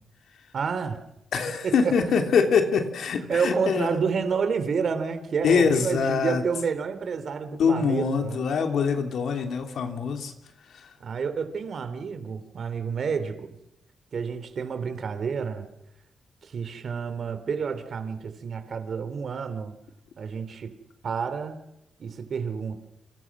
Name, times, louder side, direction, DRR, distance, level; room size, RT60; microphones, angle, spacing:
voice 1, 0.5-1.0 1.6-2.0 3.3-8.4 11.0-13.6 14.1-15.7 16.4-19.8 20.2-20.7 21.0-21.6 22.0-22.9, right 6 dB, 55° right, 10 dB, 3.1 m, -29 dB
voice 2, 1.3-4.0 5.4-6.4 7.5-10.3 10.7-10.9, left 6 dB, 75° left, 5 dB, 3.1 m, -24 dB
28.5 x 26.5 x 6.2 m, 0.83 s
cardioid pair, 120°, 0 cm